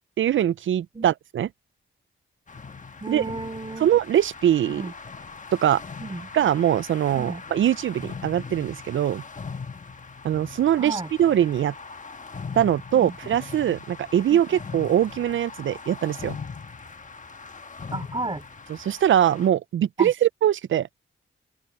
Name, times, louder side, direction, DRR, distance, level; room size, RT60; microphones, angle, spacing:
voice 1, 0.0-1.5 3.1-3.2 3.8-4.8 5.5-5.8 6.3-9.2 10.2-11.7 12.5-16.4 18.8-21.0, right 10 dB, 75° right, 0.5 m, -22 dB
sound 1, 2.5-19.5, left 5 dB, 40° left, 1.3 m, -40 dB
voice 2, 3.0-3.9 4.7-4.9 6.0-6.3 7.1-7.4 10.8-11.1 12.9-13.2 14.3-14.4 17.9-18.4 20.0-20.1, right 2 dB, 25° right, 3.2 m, -33 dB
open air
cardioid pair, 65°, 21 cm